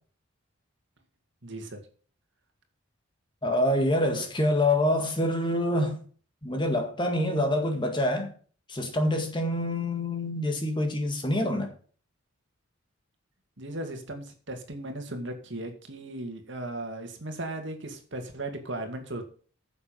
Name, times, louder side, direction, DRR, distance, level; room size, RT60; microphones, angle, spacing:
voice 1, 1.4-1.8 13.6-19.3, right 1 dB, 60° right, 2.2 m, -37 dB
voice 2, 3.4-6.0 6.4-8.3 8.7-11.7, left 1 dB, 25° left, 1.8 m, -26 dB
9.9 x 7.2 x 5.3 m
head